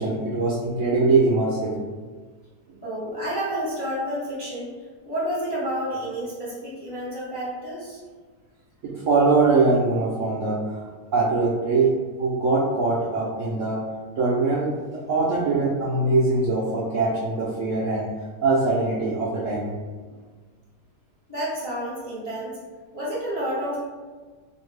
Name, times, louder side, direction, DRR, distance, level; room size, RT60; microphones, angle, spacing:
voice 1, 0.0-1.8 8.8-13.8 14.2-14.8 15.1-18.1 18.4-19.7, right 3 dB, 70° right, -6 dB, 0.7 m, -22 dB
voice 2, 2.8-4.7 5.0-8.0 21.3-22.6 22.9-23.8, equal, 25° left, -8 dB, 0.5 m, -30 dB
2.8 x 2.5 x 3.1 m, 1.4 s
omnidirectional pair, 1.8 m